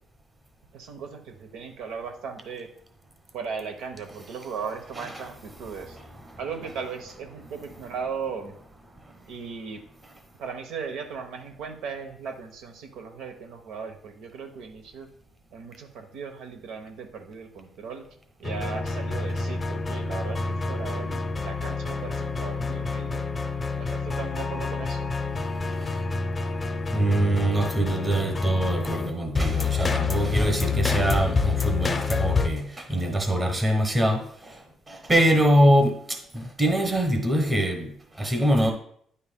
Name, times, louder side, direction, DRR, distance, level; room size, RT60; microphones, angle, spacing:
voice 1, 0.7-2.7 3.3-6.0 6.4-8.5 9.3-9.8 10.4-15.1 15.5-18.1 18.4-23.2 23.8-25.1, right 5 dB, 85° right, 5 dB, 0.8 m, -37 dB
voice 2, 5.0-5.3 6.0-6.4 26.9-34.6 34.9-38.7, right 1 dB, 15° right, 4 dB, 1.0 m, -24 dB
sound 1, 18.4-32.5, left 4 dB, 25° left, 0.5 m, -27 dB
9.5 x 5.5 x 2.2 m, 0.63 s
cardioid pair, 125°, 0 cm